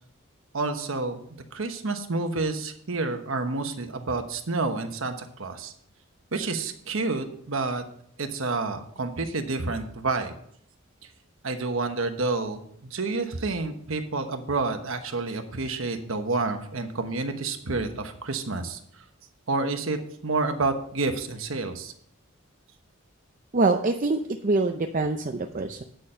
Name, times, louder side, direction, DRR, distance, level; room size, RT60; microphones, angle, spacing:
voice 1, 0.5-5.7 6.3-7.8 8.2-10.3 11.4-18.8 19.5-21.9, right 3 dB, 75° right, 6 dB, 1.1 m, -29 dB
voice 2, 23.5-25.8, right 3 dB, 40° right, 5 dB, 0.6 m, -25 dB
9.3 x 6.7 x 5.6 m, 0.65 s
head